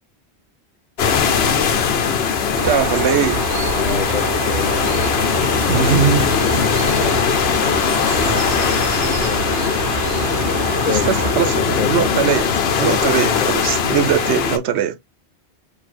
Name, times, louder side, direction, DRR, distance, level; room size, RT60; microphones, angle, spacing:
sound 1, 1.0-14.6, left 6 dB, 70° left, 1.0 m, -20 dB
Bird, 2.6-11.4, right 6 dB, 55° right, 0.8 m, -27 dB
voice 1, 2.6-3.6 5.7-6.3 10.9-15.1, right 8 dB, 85° right, 1.0 m, -20 dB
voice 2, 3.8-5.1 5.6-5.9 9.1-9.8 10.5-11.1 11.8-12.3 12.8-13.6, left 6 dB, 45° left, 1.0 m, -27 dB
4.6 x 2.7 x 4.2 m
omnidirectional pair, 1.1 m